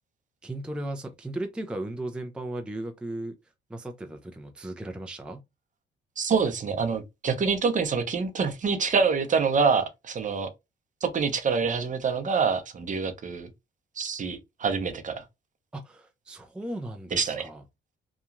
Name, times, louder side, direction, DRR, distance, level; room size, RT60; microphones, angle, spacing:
voice 1, 0.4-3.3 3.7-5.4 15.7-17.6, right 1 dB, 5° right, 0.4 m, -36 dB
voice 2, 6.2-10.5 11.0-13.5 14.0-15.2 17.1-17.5, right 5 dB, 40° right, 0.7 m, -26 dB
2.9 x 2.3 x 2.4 m
cardioid pair, 90°, 20 cm